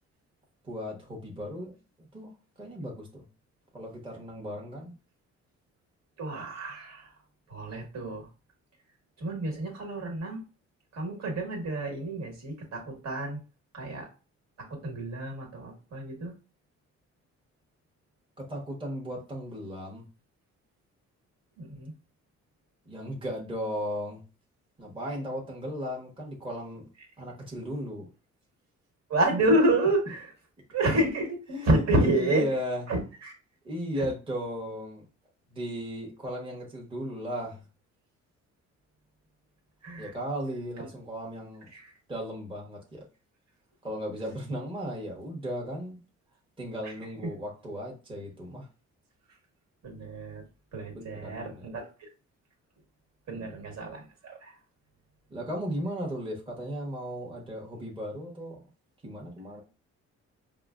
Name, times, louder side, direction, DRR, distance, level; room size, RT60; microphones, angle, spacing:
voice 1, 0.6-1.7 2.1-2.3 2.6-3.2 3.7-4.9 18.4-20.1 22.9-24.2 24.8-26.9 27.2-28.1 31.5-32.8 33.6-35.0 35.5-37.6 40.0-41.7 42.1-43.0 43.8-46.0 46.6-48.7 50.9-51.6 53.3-53.6 55.3-58.6 59.0-59.6, equal, 15° right, -1 dB, 1.0 m, -36 dB
voice 2, 6.2-7.1 7.5-8.3 9.2-10.4 10.9-13.4 13.7-14.1 14.7-16.3 21.6-21.9 29.1-30.3 30.7-32.4 32.9-33.3 34.0-34.1 39.8-40.1 41.7-41.9 46.8-46.9 49.8-50.4 50.7-52.1 53.3-54.5, right 1 dB, 60° right, 1 dB, 1.6 m, -29 dB
4.8 x 2.1 x 2.4 m, 0.32 s
cardioid pair, 90°, 30 cm